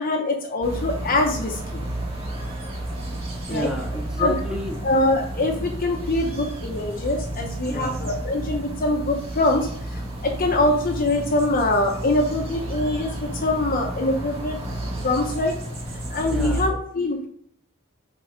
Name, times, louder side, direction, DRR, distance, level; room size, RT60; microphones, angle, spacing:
voice 1, 0.0-1.8 3.5-3.7 4.2-4.3 4.8-14.6 15.0-15.5 16.1-17.3, left 2 dB, 40° left, 2 dB, 0.9 m, -23 dB
sound 1, 0.6-16.7, right 1 dB, 25° right, 1.8 m, -31 dB
voice 2, 3.5-4.8 7.7-8.0 16.3-16.7, right 1 dB, 5° right, -3 dB, 1.6 m, -30 dB
6.4 x 4.1 x 5.1 m, 0.62 s
head